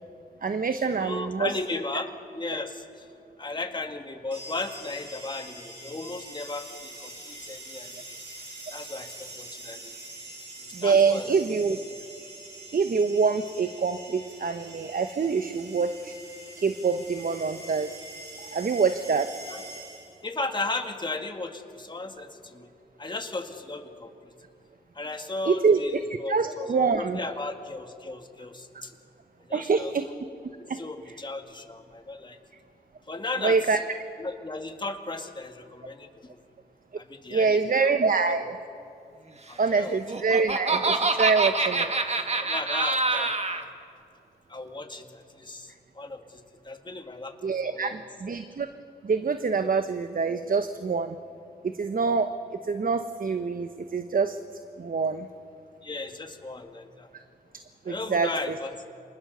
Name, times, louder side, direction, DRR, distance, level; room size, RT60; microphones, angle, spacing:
voice 1, 0.4-1.5 10.7-11.8 12.7-16.1 16.6-18.0 18.5-19.3 25.5-25.8 26.3-27.2 29.5-30.1 30.7-30.8 33.4-33.8 37.3-38.5 39.6-41.9 47.4-48.7 49.0-51.2 51.6-52.3 52.6-54.4 54.8-55.3 57.9-58.6, right 5 dB, 55° right, 9 dB, 1.0 m, -25 dB
voice 2, 1.0-3.1 3.4-8.2 8.7-9.9 10.6-11.4 19.5-19.6 20.2-22.7 23.0-24.3 24.9-25.9 26.2-28.9 29.5-29.9 30.6-32.4 33.1-33.6 34.2-36.4 37.0-37.9 38.2-38.4 39.5-40.0 42.2-43.7 44.5-48.0 55.8-57.1 57.9-58.7, left 2 dB, 25° left, 5 dB, 1.8 m, -36 dB
sound 1, 4.3-20.3, right 1 dB, 70° right, 7.4 m, -44 dB
Laughter, 39.9-43.6, right 3 dB, 40° right, 1.8 m, -26 dB
25.0 x 20.0 x 6.8 m, 2.5 s
cardioid pair, 45°, 18 cm